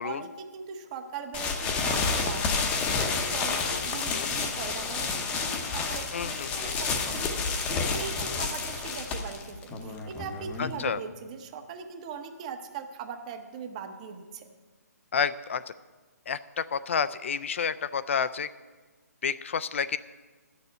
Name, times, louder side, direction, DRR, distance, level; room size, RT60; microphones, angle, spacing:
voice 1, 0.0-7.3 7.7-14.5, right 6 dB, 25° right, 7 dB, 0.8 m, -40 dB
sound 1, 1.3-10.9, left 4 dB, 10° left, 0.7 m, -30 dB
voice 2, 6.1-6.8 10.6-11.0 15.1-15.7 16.3-18.5 19.2-20.0, left 6 dB, 45° left, 14 dB, 0.3 m, -30 dB
9.7 x 6.8 x 8.2 m, 1.3 s
hypercardioid pair, 165°, 9 cm